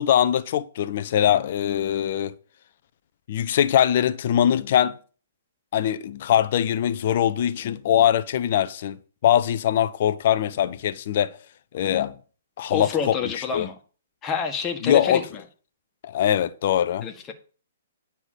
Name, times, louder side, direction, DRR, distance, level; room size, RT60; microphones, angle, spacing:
voice 1, 0.0-2.3 3.3-5.0 5.7-11.3 11.7-12.1 12.6-13.2 13.5-13.7 14.8-15.2 16.0-17.1, left 10 dB, 50° left, 0.8 m, -22 dB
voice 2, 12.7-13.8 14.2-15.4 17.0-17.3, left 6 dB, 20° left, 1.7 m, -28 dB
9.9 x 5.9 x 6.9 m
figure-of-eight pair, 120°, 0 cm